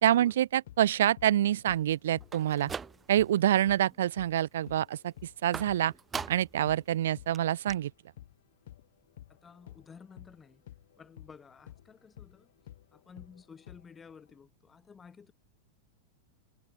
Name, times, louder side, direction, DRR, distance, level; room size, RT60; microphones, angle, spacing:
voice 1, 0.0-2.7 3.1-5.1 5.4-5.9 6.3-7.9, right 12 dB, 60° right, 0.7 m, -26 dB
sound 1, 0.6-8.4 8.7-14.4, left 13 dB, 60° left, 1.3 m, -53 dB
sound 2, 2.2-3.4 3.8-4.3 5.5-6.6 7.0-7.1 7.3-7.4 7.7-7.8, right 6 dB, 20° right, 1.2 m, -41 dB
voice 2, 9.3-10.6 11.0-12.5 12.9-15.3, left 6 dB, 15° left, 6.9 m, -53 dB
figure-of-eight pair, 90°, 0 cm